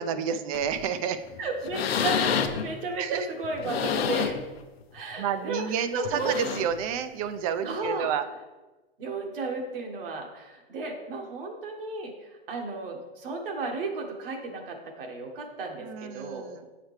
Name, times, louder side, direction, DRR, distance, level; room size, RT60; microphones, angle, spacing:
voice 1, 0.0-1.2 3.0-3.3 5.2-8.3 15.8-16.7, right 8 dB, 35° right, 11 dB, 0.5 m, -30 dB
sound 1, 0.5-0.8 1.3-1.4 1.6-2.7 3.4-4.5 5.0-5.1 6.0-6.8 7.8-7.9, left 7 dB, 75° left, 0.8 m, -29 dB
voice 2, 1.4-4.4 4.9-6.3 7.6-8.1 9.0-16.5, right 3 dB, 60° right, 2 dB, 1.5 m, -34 dB
7.8 x 4.9 x 3.3 m, 1.1 s
hypercardioid pair, 135°, 31 cm